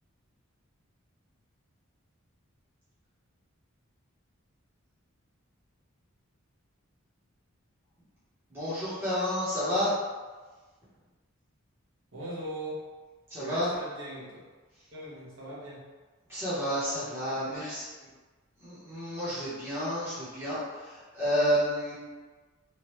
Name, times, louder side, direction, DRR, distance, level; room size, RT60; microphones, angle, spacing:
voice 1, 8.5-9.9 13.3-13.7 16.3-17.8 18.6-21.9, equal, 10° right, -13 dB, 1.0 m, -30 dB
voice 2, 12.1-12.8 13.4-14.5 14.9-15.9 17.3-17.5, right 1 dB, 65° right, -6 dB, 0.9 m, -40 dB
3.1 x 2.3 x 3.1 m, 1.3 s
head